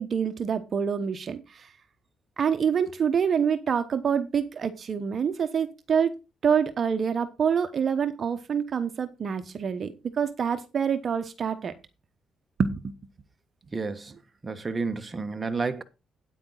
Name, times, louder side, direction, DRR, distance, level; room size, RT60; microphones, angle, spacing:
voice 1, 0.0-1.7 2.4-6.1 6.4-11.7 12.6-13.0, right 7 dB, 50° right, 1.1 m, -26 dB
voice 2, 13.7-14.1 14.4-15.8, right 4 dB, 25° right, 1.3 m, -30 dB
9.2 x 9.2 x 4.0 m
cardioid pair, 90°, 0 cm